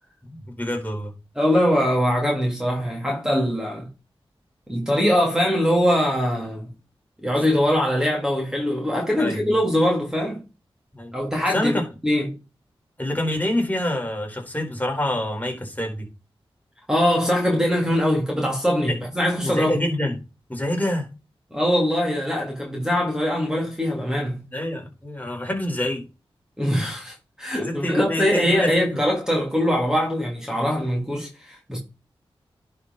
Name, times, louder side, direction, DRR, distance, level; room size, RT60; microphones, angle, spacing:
voice 1, 0.2-1.1 9.2-9.4 10.9-11.1 11.5-11.8 13.0-16.1 18.9-19.0 19.4-20.2 20.5-21.1 24.5-26.0 27.6-29.0, left 1 dB, 15° left, 4.4 m, -26 dB
voice 2, 1.3-3.9 4.7-6.7 7.2-10.4 11.1-12.3 16.9-19.8 21.5-24.4 26.6-31.8, equal, 5° right, 3.2 m, -22 dB
10.5 x 5.2 x 4.1 m
cardioid pair, 45°, 10 cm